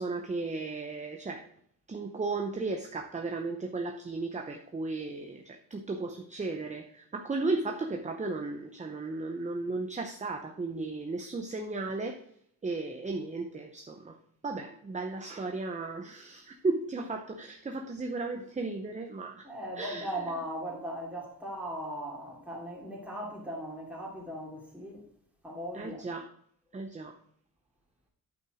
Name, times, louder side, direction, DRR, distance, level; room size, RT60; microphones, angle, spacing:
voice 1, 0.0-1.5 1.9-12.2 12.6-14.2 14.4-19.5 19.8-20.2 25.7-26.3 26.7-27.1, right 3 dB, 20° right, 0.7 m, -35 dB
voice 2, 19.4-25.0 25.4-26.0, equal, 5° right, 2.7 m, -38 dB
9.2 x 5.6 x 4.9 m
wide cardioid pair, 150°, 38 cm